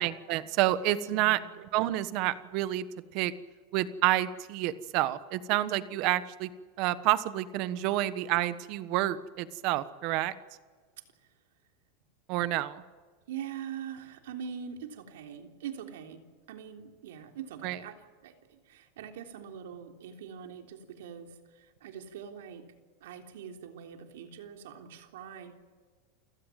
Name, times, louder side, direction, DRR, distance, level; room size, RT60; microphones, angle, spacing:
voice 1, 0.0-1.4 1.7-2.8 3.1-3.3 3.7-6.5 6.8-10.3 12.3-12.8 17.6-17.8, right 15 dB, 45° right, 14 dB, 1.3 m, -29 dB
voice 2, 1.1-1.5 13.3-16.2 16.5-25.5, right 8 dB, 85° right, 4 dB, 3.5 m, -43 dB
29.0 x 16.5 x 9.2 m, 1.5 s
supercardioid pair, 160°, 0 cm